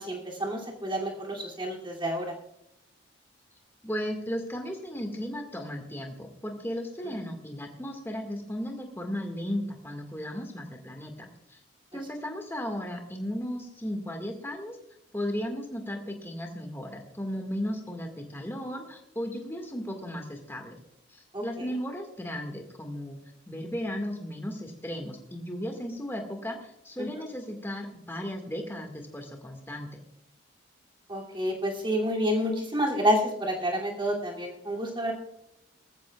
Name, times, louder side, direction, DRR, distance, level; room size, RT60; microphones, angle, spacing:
voice 1, 0.0-2.3 7.0-7.1 21.3-21.4 31.1-35.1, equal, 25° right, -2 dB, 2.6 m, -29 dB
voice 2, 3.8-11.6 11.9-14.8 15.1-20.8 21.1-23.2 23.5-30.0, equal, 10° left, 3 dB, 1.8 m, -35 dB
20.0 x 14.5 x 2.4 m, 0.79 s
head